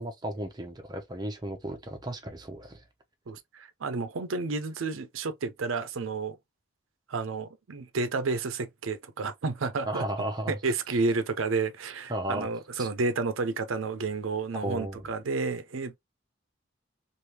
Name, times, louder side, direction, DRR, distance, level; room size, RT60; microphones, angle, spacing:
voice 1, 0.0-2.8 9.8-10.6 12.1-12.5 12.8-12.9 14.5-15.1, right 1 dB, 20° right, 0.7 m, -34 dB
voice 2, 3.3-6.4 7.1-10.0 10.5-16.0, right 3 dB, 90° right, 0.6 m, -31 dB
3.3 x 2.5 x 2.9 m
head